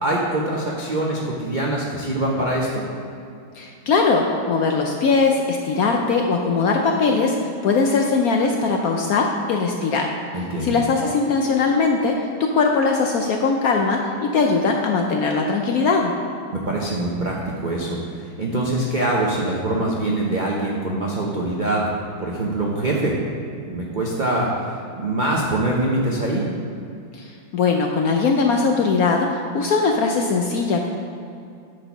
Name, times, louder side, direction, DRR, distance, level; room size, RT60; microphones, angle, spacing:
voice 1, 0.0-2.8 10.3-10.7 16.5-21.9 22.2-23.2 23.7-26.5, right 1 dB, 75° right, -3 dB, 0.4 m, -24 dB
voice 2, 3.6-10.1 10.6-16.1 27.1-30.9, left 4 dB, 75° left, 2 dB, 0.8 m, -20 dB
9.0 x 4.1 x 6.0 m, 2.5 s
omnidirectional pair, 2.1 m